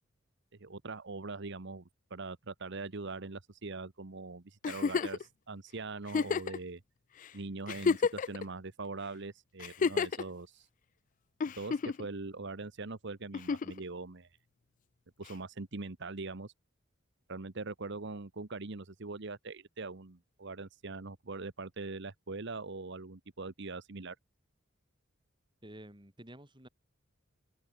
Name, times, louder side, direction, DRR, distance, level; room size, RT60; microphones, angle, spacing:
voice 1, 0.6-6.8 7.3-10.7 11.6-14.3 15.2-16.5 17.3-24.2, right 3 dB, 60° right, 1.2 m, -42 dB
Giggle, 4.6-5.2 6.1-6.6 7.2-7.3 7.7-8.4 9.6-10.2 11.4-12.1 13.3-13.8 15.3-15.4, left 5 dB, 40° left, 0.4 m, -30 dB
voice 2, 25.6-26.7, right 1 dB, 25° right, 6.1 m, -51 dB
open air
head